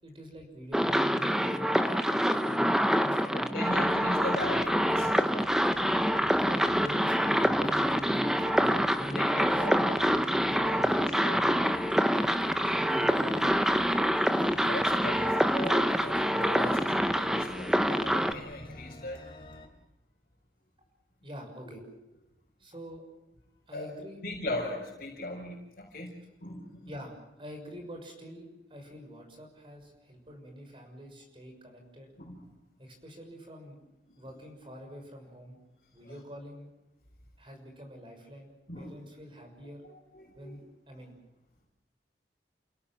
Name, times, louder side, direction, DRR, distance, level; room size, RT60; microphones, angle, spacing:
voice 1, 0.0-3.9 6.4-9.7 10.7-10.9 12.4-13.9 21.2-21.8 22.6-23.0 23.7-24.2 26.9-32.1 32.8-33.8 34.2-35.6 35.9-36.7 37.4-39.8 40.4-40.6 40.9-41.2, equal, 30° right, 3 dB, 6.5 m, -45 dB
sound 1, 0.7-18.3, equal, 5° right, 1.0 m, -26 dB
voice 2, 3.3-5.2 9.1-9.8 10.5-11.6 14.5-19.2 21.7-21.8 23.7-23.9 24.2-26.1 26.4-26.9 32.2-32.4 34.1-34.3 36.0-36.1 38.7-38.9 40.1-40.6, left 1 dB, 50° left, -4 dB, 5.1 m, -39 dB
sound 2, 3.7-19.7, left 1 dB, 30° left, 4.0 m, -49 dB
30.0 x 17.0 x 7.5 m, 0.95 s
head